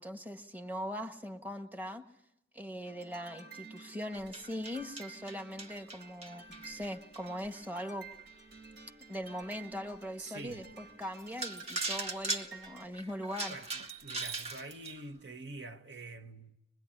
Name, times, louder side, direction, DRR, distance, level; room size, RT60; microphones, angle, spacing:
voice 1, 0.0-2.0 2.5-8.1 9.1-13.5, equal, 10° right, 1.4 m, -41 dB
sound 1, 2.8-12.9, right 4 dB, 85° right, 4.3 m, -52 dB
sound 2, 4.1-7.6 8.2-8.3 8.8-8.9 9.4-9.5 10.7-10.8 11.2-15.0, right 3 dB, 35° right, 1.8 m, -39 dB
voice 2, 10.2-10.7 12.9-13.1 13.5-16.6, right 2 dB, 70° right, 1.3 m, -46 dB
25.0 x 21.5 x 10.0 m
head